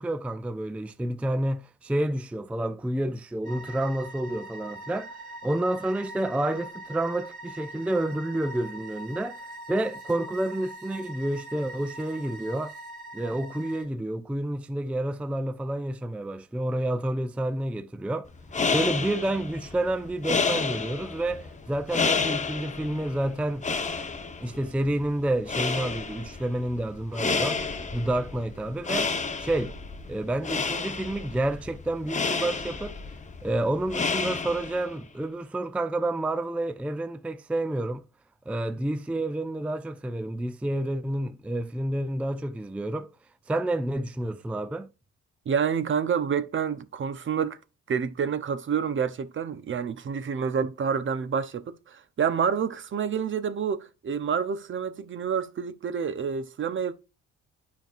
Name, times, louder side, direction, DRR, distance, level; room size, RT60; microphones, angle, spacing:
voice 1, 0.0-5.2 5.4-9.4 9.7-12.7 13.1-18.3 18.7-23.6 24.4-27.6 27.9-29.1 29.4-29.8 30.1-32.9 33.4-38.0 38.5-43.1 43.5-44.9, right 1 dB, 5° right, 0.4 m, -29 dB
sound 1, 3.4-13.8, right 2 dB, 75° right, 2.6 m, -43 dB
sound 2, 18.3-34.9, left 4 dB, 25° left, 0.9 m, -31 dB
voice 2, 45.5-47.6 47.9-56.9, right 7 dB, 40° right, 0.6 m, -28 dB
9.0 x 5.3 x 2.4 m
cardioid pair, 90°, 30 cm